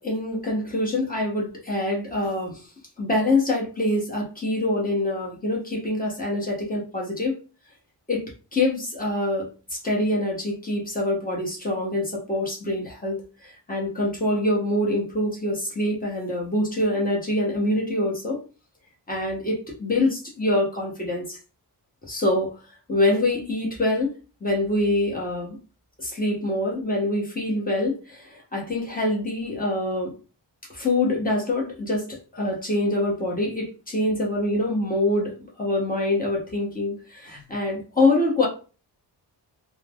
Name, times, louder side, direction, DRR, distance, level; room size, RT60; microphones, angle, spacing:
voice 1, 0.0-2.7 3.0-7.4 8.1-18.4 19.1-21.4 22.1-22.6 22.9-24.1 24.4-25.6 26.0-30.1 30.7-38.5, left 1 dB, 20° left, -3 dB, 0.9 m, -25 dB
3.2 x 2.1 x 2.3 m, 0.36 s
wide cardioid pair, 135°, 42 cm